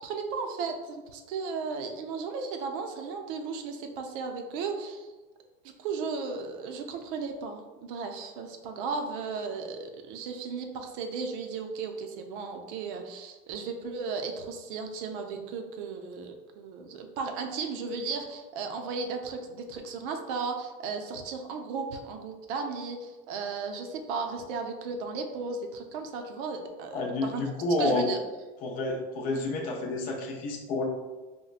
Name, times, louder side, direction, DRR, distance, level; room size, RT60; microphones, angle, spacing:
voice 1, 0.0-5.1 5.8-27.4 27.8-28.2, right 4 dB, 65° right, 4 dB, 0.5 m, -35 dB
voice 2, 26.9-28.1 28.6-30.8, left 2 dB, 30° left, 0 dB, 0.5 m, -29 dB
4.1 x 2.1 x 2.4 m, 1.2 s
supercardioid pair, 140°, 29 cm